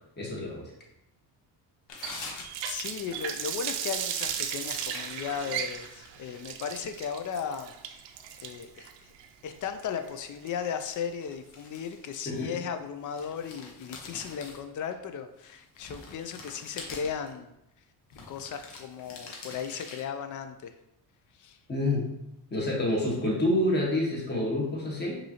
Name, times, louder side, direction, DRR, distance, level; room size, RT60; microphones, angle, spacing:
voice 1, 0.2-0.7 12.2-12.5 21.7-22.1 22.5-25.2, left 1 dB, 20° left, -3 dB, 1.4 m, -28 dB
sound 1, 1.9-2.8 3.1-3.3 3.6-3.8 4.2-6.5 7.0-8.0 10.6-10.8 11.2-12.7 13.0-14.9 15.4-17.3 18.1-20.0, left 4 dB, 70° left, 1.1 m, -45 dB
Water tap faucet, 2.0-10.9, right 8 dB, 85° right, 0.6 m, -36 dB
voice 2, 2.7-7.7 8.4-9.1 9.4-17.5 18.3-20.7 21.4-21.6, left 7 dB, 45° left, 8 dB, 0.4 m, -36 dB
5.2 x 2.8 x 2.9 m, 0.84 s
cardioid pair, 105°, 44 cm